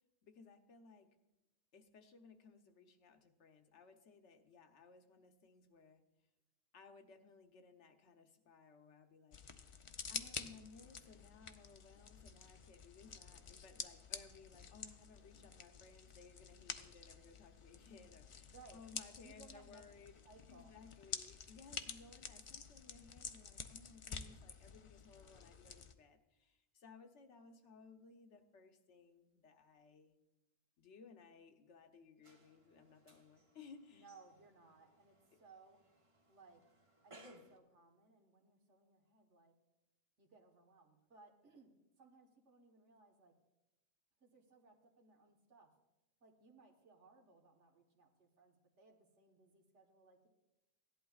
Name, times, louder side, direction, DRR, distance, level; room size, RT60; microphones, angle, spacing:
voice 1, 0.2-1.1 1.7-6.0 6.7-9.4 10.1-20.1 20.5-30.1 30.8-34.1, left 4 dB, 80° left, 5 dB, 1.2 m, -60 dB
sound 1, 9.3-25.9, left 5 dB, 50° left, 0.3 m, -50 dB
voice 2, 18.5-18.8 19.2-19.8 20.2-20.7 33.9-35.8 36.3-36.6 37.0-39.5 40.2-41.7 42.0-43.3 44.2-45.7 46.2-50.3, right 3 dB, 85° right, 2 dB, 1.6 m, -64 dB
sound 2, 32.2-37.6, right 1 dB, 30° right, 0.8 m, -64 dB
16.5 x 11.0 x 2.4 m, 0.99 s
omnidirectional pair, 1.2 m